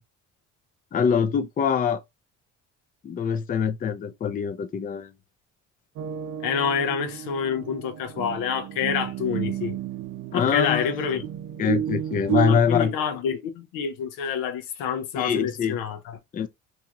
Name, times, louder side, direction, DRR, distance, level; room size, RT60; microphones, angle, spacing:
voice 1, 0.9-2.0 3.0-5.1 10.3-11.1 11.6-12.9 15.2-15.8 16.3-16.5, left 7 dB, 25° left, 0.4 m, -24 dB
sound 1, 6.0-12.6, right 11 dB, 65° right, 0.5 m, -32 dB
voice 2, 6.4-9.8 10.3-11.2 12.5-16.2, left 7 dB, 85° left, 0.7 m, -27 dB
2.7 x 2.3 x 2.8 m
supercardioid pair, 75°, 34 cm